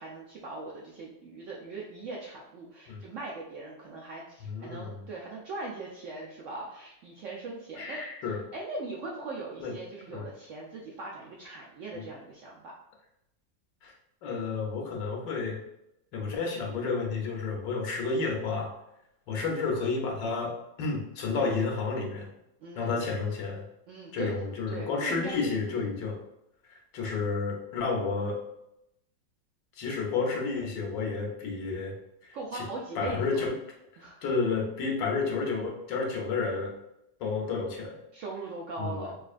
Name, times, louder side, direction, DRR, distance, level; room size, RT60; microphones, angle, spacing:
voice 1, 0.0-8.0 8.5-12.8 22.6-23.0 23.9-24.4 24.7-25.9 32.3-33.4 34.0-34.2 38.1-39.2, right 3 dB, 85° right, -3 dB, 0.6 m, -40 dB
voice 2, 4.4-5.1 7.8-8.4 9.6-9.7 10.1-10.3 11.9-12.0 13.8-13.9 14.2-15.6 16.1-18.7 19.3-22.3 22.7-23.6 24.1-26.2 26.7-28.4 29.8-32.0 32.2-32.6 33.0-33.5 33.9-36.8 37.2-38.0 38.8-39.1, left 4 dB, 80° left, 0 dB, 1.5 m, -31 dB
5.2 x 2.4 x 2.4 m, 0.83 s
omnidirectional pair, 1.9 m